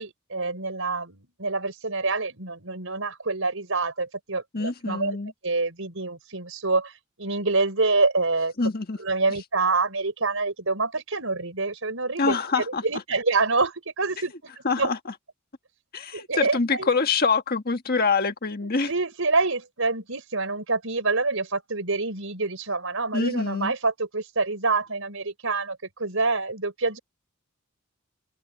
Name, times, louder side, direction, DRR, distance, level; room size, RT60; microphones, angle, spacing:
voice 1, 0.0-5.2 5.4-6.9 7.2-8.5 9.0-14.3 14.8-14.9 16.1-16.9 18.9-27.0, right 3 dB, 70° right, 5.5 m, -26 dB
voice 2, 4.5-5.3 8.6-9.0 12.2-12.8 14.6-15.0 15.9-18.9 23.1-23.7, left 4 dB, 45° left, 1.6 m, -25 dB
open air
head